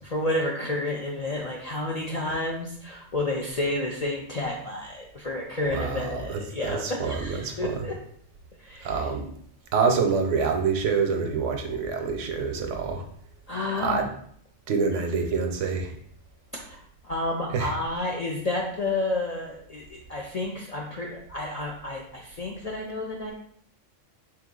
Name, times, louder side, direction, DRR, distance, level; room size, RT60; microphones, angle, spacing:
voice 1, 0.0-7.9 8.6-9.0 13.5-14.0 16.7-16.8 17.0-23.3, left 2 dB, 55° left, -1 dB, 0.4 m, -30 dB
voice 2, 5.7-7.8 8.8-9.3 9.7-13.0 13.8-14.1 14.7-16.0 17.5-17.7, right 5 dB, 80° right, 5 dB, 1.0 m, -26 dB
3.5 x 2.8 x 3.7 m, 0.63 s
omnidirectional pair, 1.3 m